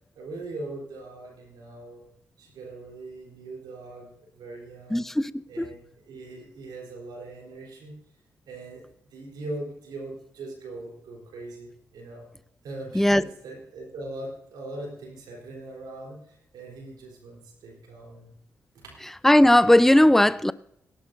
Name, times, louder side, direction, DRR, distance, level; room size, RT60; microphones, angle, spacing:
voice 1, 0.1-2.0 2.4-5.0 5.5-7.9 8.5-8.8 9.1-12.3 12.6-18.4 18.7-18.9, right 2 dB, 80° right, 3.9 m, -40 dB
voice 2, 4.9-5.6 12.9-13.2 19.2-20.5, left 1 dB, 5° left, 0.5 m, -18 dB
18.0 x 11.0 x 2.7 m
supercardioid pair, 45°, 7 cm